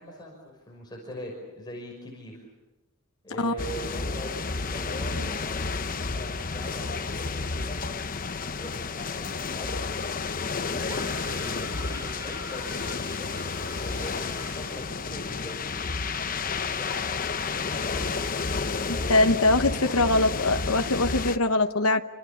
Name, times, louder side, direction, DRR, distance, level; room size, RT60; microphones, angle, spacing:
voice 1, 0.0-2.5 3.2-7.8 8.6-16.1 16.7-20.6, equal, 20° left, -2 dB, 5.7 m, -41 dB
sound 1, 3.6-21.4, left 4 dB, 40° left, 0.9 m, -31 dB
sound 2, 10.9-14.7, right 1 dB, 15° right, 3.0 m, -44 dB
voice 2, 19.1-22.0, left 2 dB, 70° left, 6 dB, 1.0 m, -22 dB
29.0 x 26.0 x 7.2 m, 1.1 s
head